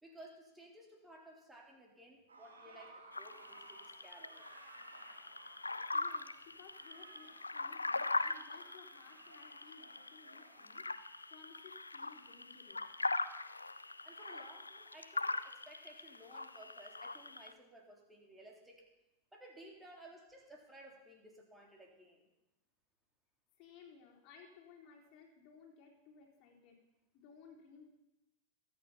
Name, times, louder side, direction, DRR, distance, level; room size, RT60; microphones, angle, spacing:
voice 1, 0.0-4.5 14.0-18.9 19.3-22.2, right 1 dB, 10° right, 0 dB, 3.6 m, -57 dB
sound 1, 2.3-10.8, right 3 dB, 70° right, 4.1 m, -58 dB
sound 2, 3.1-17.5, left 3 dB, 80° left, 0.6 m, -41 dB
voice 2, 5.9-12.8 23.6-26.8 27.1-27.9, left 6 dB, 40° left, 0 dB, 4.0 m, -59 dB
22.5 x 9.0 x 5.7 m, 0.96 s
figure-of-eight pair, 90°, 0 cm